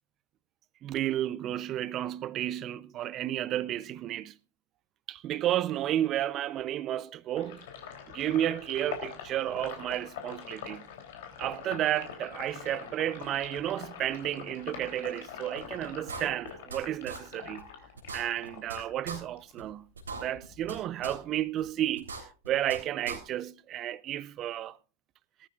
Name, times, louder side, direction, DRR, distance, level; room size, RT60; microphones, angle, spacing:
voice 1, 0.8-4.3 5.1-7.7 8.1-10.9 11.4-17.7 18.1-19.9 20.1-22.1 22.5-24.8, right 12 dB, 30° right, 0.6 m, -32 dB
Sink (filling or washing), 7.4-19.6 20.0-21.4, left 8 dB, 55° left, 3.4 m, -44 dB
sound 1, 15.6-15.7 16.1-16.8 17.1-17.2 17.6-17.7 18.0-18.8 19.1-19.2 19.6-19.7 20.0-20.8 21.0-21.1 21.6-21.7 22.0-22.8 23.1-23.2, right 4 dB, 70° right, 3.6 m, -39 dB
19.0 x 13.0 x 2.5 m
figure-of-eight pair, 90°, 0 cm